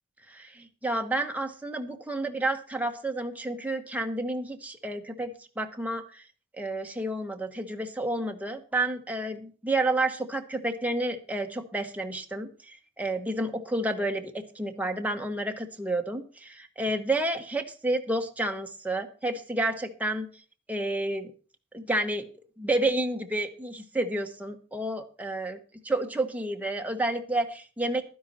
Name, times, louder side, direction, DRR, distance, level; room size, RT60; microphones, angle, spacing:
voice 1, 0.3-5.3 5.6-6.2 6.6-20.3 20.7-21.3 21.7-22.3 22.6-25.6 25.9-28.0, right 1 dB, 10° right, 4 dB, 1.0 m, -30 dB
12.0 x 10.5 x 4.2 m, 0.38 s
head